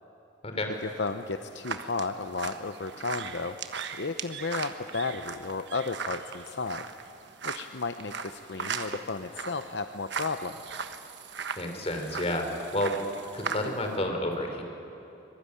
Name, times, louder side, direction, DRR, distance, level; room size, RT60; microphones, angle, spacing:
voice 1, 0.8-3.6 4.0-6.8 7.4-10.7, left 3 dB, 60° left, 8 dB, 0.8 m, -33 dB
sound 1, 0.8-14.0, right 5 dB, 60° right, 1.3 m, -39 dB
voice 2, 11.6-12.9 13.3-14.6, left 1 dB, 35° left, 4 dB, 3.6 m, -30 dB
24.5 x 22.0 x 10.0 m, 2.9 s
head